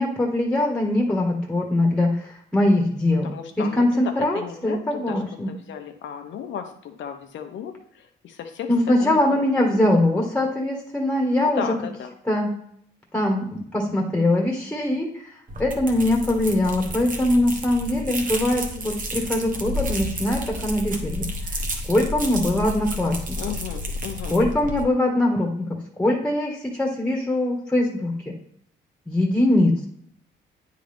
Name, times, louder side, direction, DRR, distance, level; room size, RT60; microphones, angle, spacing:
voice 1, 0.0-3.3 3.6-5.5 8.7-11.6 12.3-12.5 13.1-15.1 15.6-21.3 21.9-23.4 24.3-28.3 29.1-29.9, left 1 dB, 5° left, -1 dB, 1.7 m, -22 dB
voice 2, 3.2-5.2 5.5-8.7 9.0-10.0 11.4-12.1 23.4-24.4, left 8 dB, 70° left, 6 dB, 1.0 m, -35 dB
sound 1, 15.5-24.8, equal, 45° right, 1.3 m, -31 dB
9.2 x 3.8 x 3.5 m, 0.67 s
cardioid pair, 90°, 20 cm